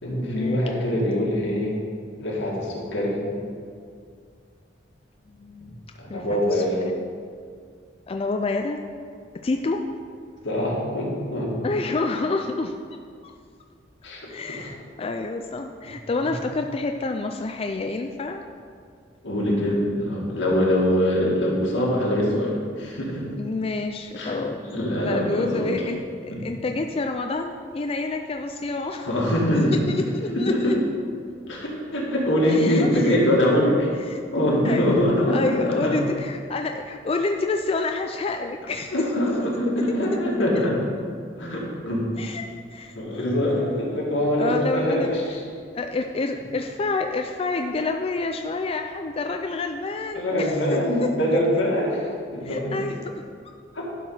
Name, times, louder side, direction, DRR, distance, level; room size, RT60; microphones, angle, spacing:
voice 1, 0.0-1.8 2.2-3.2 6.0-6.8 10.4-11.6 14.0-14.7 16.2-16.3 19.2-23.3 24.1-24.3 24.6-25.7 26.3-26.4 29.1-29.8 30.3-30.8 31.5-34.0 34.3-36.0 38.9-40.9 41.4-42.1 43.0-45.4 50.1-52.7 53.7-53.9, equal, 80° left, -4 dB, 2.2 m, -23 dB
voice 2, 5.4-5.8 6.1-6.6 8.1-8.8 9.4-9.9 11.6-12.7 14.3-18.4 23.4-24.6 25.0-29.1 29.9-30.7 32.4-32.9 34.1-34.2 34.6-35.0 35.3-39.0 42.2-42.4 42.7-43.3 44.4-45.1 45.7-51.1 52.4-53.2, left 3 dB, 30° left, 4 dB, 0.4 m, -28 dB
11.5 x 4.7 x 5.6 m, 2.2 s
head